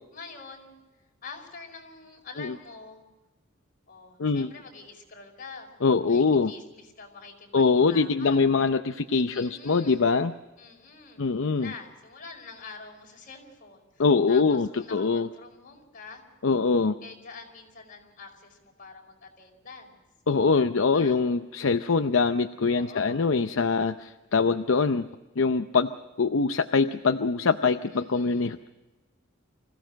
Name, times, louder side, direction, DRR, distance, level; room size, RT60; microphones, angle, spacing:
voice 1, 0.1-0.7 1.2-3.0 3.9-5.7 6.1-8.4 9.3-10.1 10.6-16.2 17.0-20.0 20.9-21.2 22.7-23.3 27.9-28.5, left 4 dB, 45° left, 1 dB, 5.2 m, -46 dB
voice 2, 5.8-6.5 7.5-10.3 11.2-11.7 14.0-15.3 16.4-17.0 20.3-25.1 25.4-25.9 26.2-28.7, left 4 dB, 75° left, 8 dB, 0.6 m, -23 dB
25.0 x 16.0 x 6.4 m, 1.1 s
head